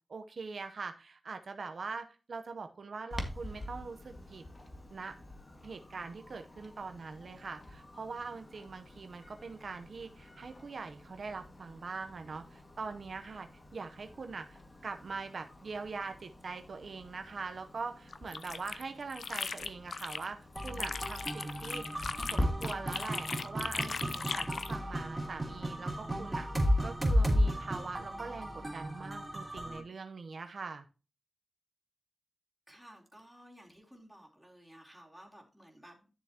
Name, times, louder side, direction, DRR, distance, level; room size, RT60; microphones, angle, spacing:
voice 1, 0.1-4.4 4.9-5.1 5.6-22.0 22.3-30.9, right 4 dB, 70° right, 7 dB, 0.8 m, -43 dB
Clock, 3.1-22.5, left 1 dB, 35° left, 1.8 m, -45 dB
sound 1, 18.1-20.3 20.6-24.8, left 5 dB, 70° left, 0.5 m, -38 dB
sound 2, 20.6-29.8, equal, 20° right, 3.2 m, -33 dB
voice 2, 32.7-36.1, equal, ahead, -2 dB, 3.6 m, -55 dB
11.5 x 7.0 x 2.9 m, 0.33 s
cardioid pair, 65°, 0 cm